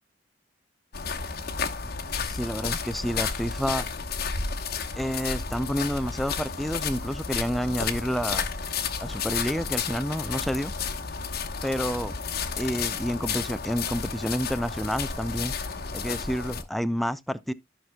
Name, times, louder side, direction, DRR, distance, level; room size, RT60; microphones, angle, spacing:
sound 1, 0.9-16.6, left 5 dB, 55° left, 1.1 m, -32 dB
voice 1, 2.2-3.9 5.0-8.5 9.0-10.7 11.6-12.1 12.6-15.5 15.9-17.5, equal, ahead, 0.4 m, -29 dB
14.0 x 5.9 x 2.2 m
head